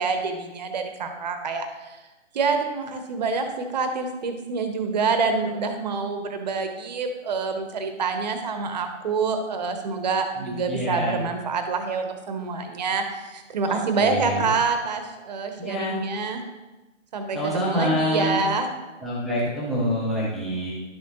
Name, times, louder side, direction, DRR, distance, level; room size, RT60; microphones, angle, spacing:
voice 1, 0.0-2.0 2.3-16.4 17.1-18.7, right 4 dB, 35° right, 6 dB, 0.9 m, -27 dB
voice 2, 10.4-11.2 13.6-14.5 15.6-16.0 17.3-18.4 19.0-20.7, left 1 dB, ahead, -9 dB, 0.3 m, -27 dB
11.5 x 6.2 x 3.0 m, 1.1 s
figure-of-eight pair, 150°, 38 cm